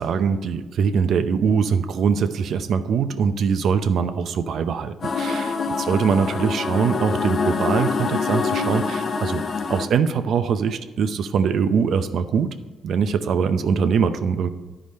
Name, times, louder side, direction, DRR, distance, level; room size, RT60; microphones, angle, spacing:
voice 1, 0.0-9.4 9.7-12.5 12.8-14.5, right 6 dB, 65° right, 10 dB, 0.6 m, -22 dB
sound 1, 5.0-9.9, left 4 dB, 50° left, 0.7 m, -25 dB
11.0 x 5.0 x 4.2 m, 1.3 s
cardioid pair, 90°, 0 cm